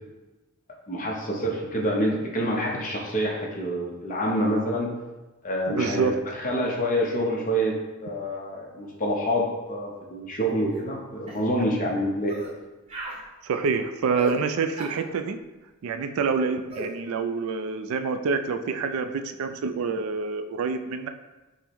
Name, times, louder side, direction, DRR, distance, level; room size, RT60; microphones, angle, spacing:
voice 1, 0.9-4.9 5.4-12.4, equal, 35° left, -1 dB, 0.8 m, -27 dB
voice 2, 5.7-6.2 13.4-15.4 15.8-21.1, right 5 dB, 70° right, 8 dB, 0.3 m, -27 dB
sound 1, 10.7-10.9 11.3-11.5 12.3-12.5 12.9-13.2 14.2-14.4 14.8-15.0 16.7-16.9, equal, 25° right, 0.8 m, -34 dB
5.3 x 2.1 x 4.6 m, 1.1 s
head